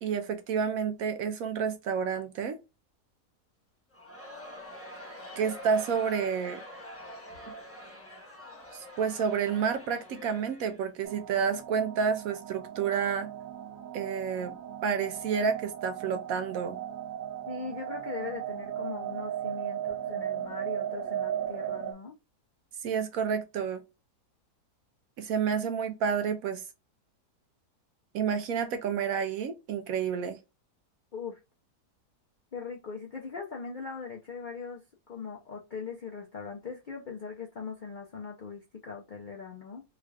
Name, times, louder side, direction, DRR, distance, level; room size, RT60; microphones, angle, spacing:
voice 1, 0.0-2.6 5.4-6.6 7.5-7.6 8.7-13.3 13.9-14.6 14.8-16.8 22.8-23.8 25.2-26.6 28.1-30.4, right 6 dB, 70° right, 0.9 m, -30 dB
Crowd, 3.9-11.2, left 1 dB, 10° left, 0.7 m, -45 dB
sound 1, 11.0-21.9, right 10 dB, 85° right, 1.4 m, -37 dB
voice 2, 17.5-22.1 31.1-31.4 32.5-39.8, left 5 dB, 65° left, 0.4 m, -40 dB
3.6 x 2.3 x 3.2 m
omnidirectional pair, 1.8 m